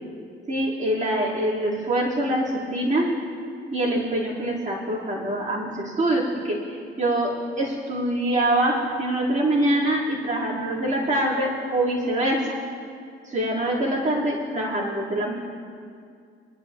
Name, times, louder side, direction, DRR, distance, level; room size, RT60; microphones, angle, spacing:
voice 1, 0.5-3.1 3.7-12.6 13.2-15.3, right 1 dB, 40° right, -6 dB, 3.9 m, -24 dB
22.0 x 11.5 x 3.0 m, 2.3 s
cardioid pair, 90°, 20 cm